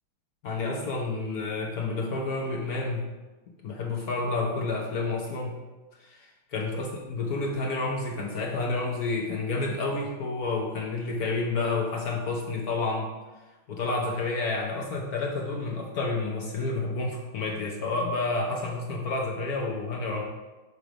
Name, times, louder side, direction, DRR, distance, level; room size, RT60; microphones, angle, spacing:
voice 1, 0.4-3.1 3.6-5.6 6.0-13.1 13.7-20.2, left 3 dB, 60° left, 0 dB, 1.0 m, -30 dB
7.8 x 3.2 x 5.1 m, 1.2 s
omnidirectional pair, 2.4 m